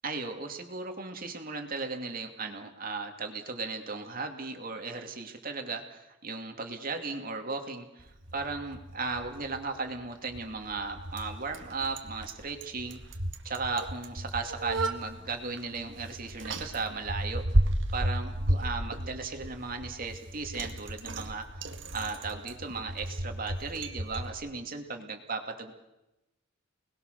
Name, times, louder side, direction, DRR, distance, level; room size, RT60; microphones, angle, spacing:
voice 1, 0.0-13.0 13.4-17.4 17.9-21.4 21.9-25.8, right 4 dB, 45° right, 4 dB, 2.7 m, -36 dB
Bicycle, 8.0-24.3, right 1 dB, 65° right, 2.0 m, -34 dB
29.5 x 20.5 x 6.8 m, 0.96 s
head